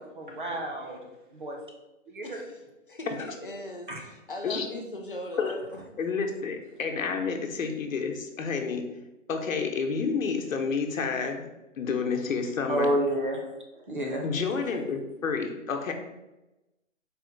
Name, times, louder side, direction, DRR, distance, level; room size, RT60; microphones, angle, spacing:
voice 1, 0.2-1.0 1.3-1.6 2.1-2.4 3.9-4.0 12.7-13.4 13.8-14.2, right 1 dB, 40° right, 0 dB, 0.6 m, -29 dB
voice 2, 2.2-5.8 14.4-14.9, left 1 dB, 45° left, 2 dB, 0.5 m, -40 dB
voice 3, 6.0-8.9 9.3-11.5 11.8-12.9 14.2-15.9, left 5 dB, 80° left, 3 dB, 0.8 m, -29 dB
4.2 x 2.1 x 3.8 m, 0.98 s
hypercardioid pair, 175°, 39 cm